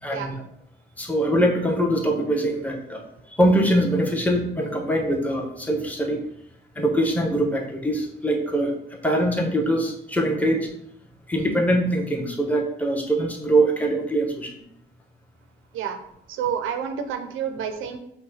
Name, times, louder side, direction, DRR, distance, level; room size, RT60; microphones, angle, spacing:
voice 1, 0.0-0.4 1.0-3.0 3.3-6.2 6.7-8.7 9.0-10.7 11.3-14.5, right 1 dB, 5° left, 1 dB, 1.0 m, -23 dB
voice 2, 16.3-18.0, right 8 dB, 90° right, 7 dB, 0.6 m, -29 dB
5.6 x 2.2 x 4.1 m, 0.75 s
cardioid pair, 90°, 20 cm